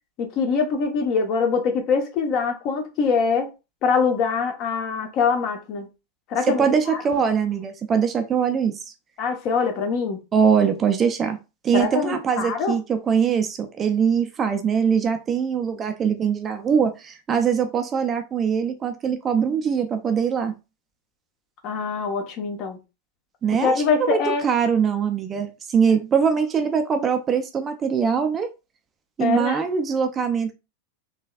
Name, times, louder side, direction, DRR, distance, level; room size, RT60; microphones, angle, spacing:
voice 1, 0.2-3.5 3.8-5.9 6.3-7.0 9.2-10.2 11.7-12.8 21.6-22.8 23.6-24.4 29.2-29.6, left 5 dB, 40° left, 1.0 m, -23 dB
voice 2, 6.5-8.7 10.3-11.4 11.6-20.5 23.4-23.7 24.0-28.5 29.2-30.5, right 7 dB, 25° right, 0.5 m, -22 dB
4.0 x 3.1 x 2.4 m
figure-of-eight pair, 90°, 0 cm